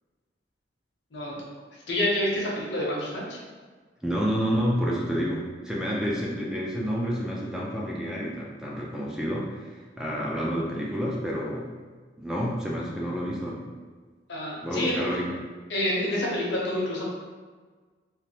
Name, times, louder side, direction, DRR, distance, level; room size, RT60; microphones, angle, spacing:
voice 1, 1.9-3.4 14.3-15.1 15.7-17.1, left 1 dB, 80° left, -4 dB, 0.8 m, -28 dB
voice 2, 4.0-11.7 12.2-13.6 14.6-15.3, equal, 5° right, -4 dB, 0.4 m, -29 dB
3.2 x 2.5 x 2.8 m, 1.5 s
head